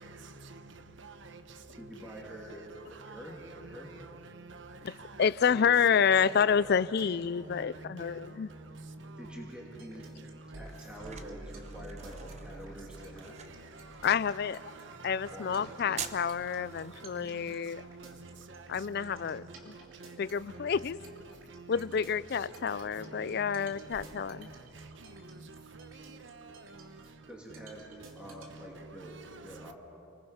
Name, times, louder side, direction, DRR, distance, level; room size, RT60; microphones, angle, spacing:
voice 1, 1.8-2.6 3.0-3.9 9.2-10.0 10.6-13.4 15.3-15.7 27.3-29.2 29.4-29.7, equal, 5° right, 2.5 m, -47 dB
voice 2, 4.5-5.3 6.0-6.1 6.5-6.7 7.0-8.2 8.7-9.4 14.5-16.1 16.5-16.7 17.7-18.1 18.5-18.6 19.0-19.4 20.0-20.2 20.5-20.7 21.0-21.1 21.5-21.8 23.0-23.4 23.7-23.9 25.7-25.9 26.2-26.6 28.7-29.5, right 3 dB, 65° right, 1.0 m, -48 dB
voice 3, 5.2-8.5 14.0-14.6 15.0-17.8 18.7-19.7 20.2-21.0 21.7-24.5, left 7 dB, 55° left, 0.4 m, -29 dB
sound 1, 9.8-28.5, right 2 dB, 85° right, 3.2 m, -51 dB
sound 2, 10.0-27.5, right 7 dB, 35° right, 0.9 m, -52 dB
29.5 x 20.5 x 5.7 m
head